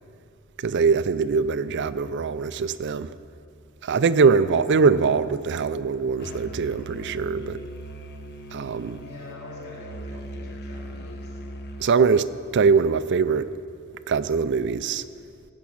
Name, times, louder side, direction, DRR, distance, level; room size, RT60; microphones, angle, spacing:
voice 1, 0.6-3.1 3.8-7.6 8.5-9.0 11.8-13.5 14.1-15.0, right 5 dB, 55° right, 14 dB, 0.4 m, -22 dB
Musical instrument, 6.2-11.9, right 1 dB, 50° left, 0.9 m, -39 dB
voice 2, 9.0-11.4, left 2 dB, 90° left, -5 dB, 4.1 m, -44 dB
17.0 x 6.1 x 8.6 m, 2.4 s
head